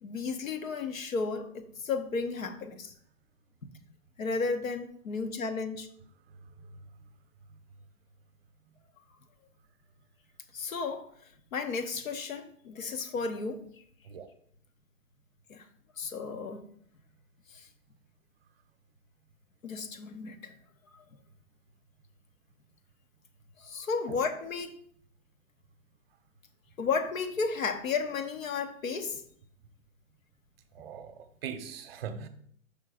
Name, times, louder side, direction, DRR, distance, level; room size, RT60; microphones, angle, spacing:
voice 1, 0.0-2.9 4.2-5.9 10.5-11.0 11.5-13.6 15.5-15.7 16.0-16.6 17.5-17.7 19.6-20.5 20.9-21.0 23.6-24.7 26.8-29.2, left 4 dB, 75° left, 7 dB, 1.1 m, -33 dB
voice 2, 30.7-32.3, right 7 dB, 45° right, 9 dB, 0.7 m, -40 dB
5.5 x 4.1 x 4.9 m, 0.64 s
hypercardioid pair, 135°, 41 cm